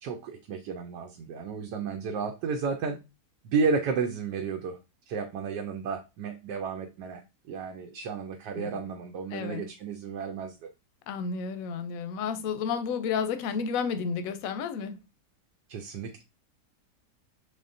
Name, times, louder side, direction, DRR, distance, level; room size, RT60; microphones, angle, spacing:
voice 1, 0.0-3.0 3.4-4.8 5.1-7.2 7.5-10.7 15.7-16.2, right 5 dB, 85° right, 1.2 m, -32 dB
voice 2, 9.3-9.7 11.1-15.0, left 6 dB, 70° left, 0.9 m, -31 dB
4.3 x 3.5 x 2.5 m
omnidirectional pair, 1.8 m